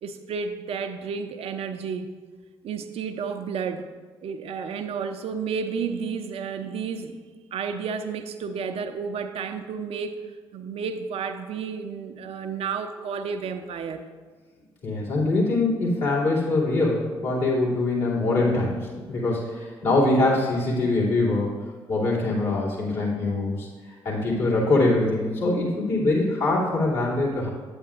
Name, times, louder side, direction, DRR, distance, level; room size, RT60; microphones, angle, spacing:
voice 1, 0.0-2.1 2.6-3.9 4.2-7.2 7.5-10.1 10.5-14.1, right 6 dB, 55° right, 7 dB, 0.5 m, -31 dB
voice 2, 14.8-18.8 19.1-21.5 21.9-23.7 24.0-27.5, left 2 dB, 70° left, -7 dB, 2.6 m, -23 dB
8.7 x 8.7 x 2.5 m, 1.4 s
figure-of-eight pair, 40°, 12 cm